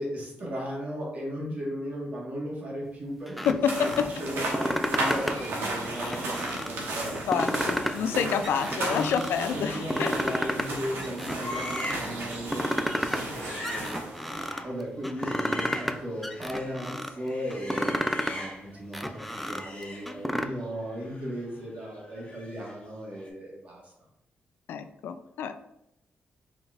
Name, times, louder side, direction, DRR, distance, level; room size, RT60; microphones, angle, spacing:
voice 1, 0.0-8.3 8.9-9.3 9.5-23.9, equal, 45° right, -3 dB, 1.6 m, -36 dB
sound 1, 3.3-4.0 4.4-5.5 5.8-6.7 7.1-8.1 8.4-9.3 9.7-10.7 11.0-11.9 12.3-13.3 13.6-14.6 15.0-16.0 16.2-17.1 17.5-18.4 18.8-20.4, equal, ahead, 0.3 m, -31 dB
voice 2, 3.5-4.3 6.0-6.2 7.3-10.3 24.7-25.6, left 7 dB, 85° left, 9 dB, 0.4 m, -28 dB
sound 2, 3.6-14.6, right 2 dB, 90° right, 1.1 m, -34 dB
sound 3, 11.4-12.2 12.5-12.7 13.1-16.8 17.1-18.8 19.1-22.9 23.1-23.3, left 1 dB, 40° left, 1.0 m, -41 dB
4.7 x 4.0 x 2.5 m, 0.82 s
cardioid pair, 120°, 4 cm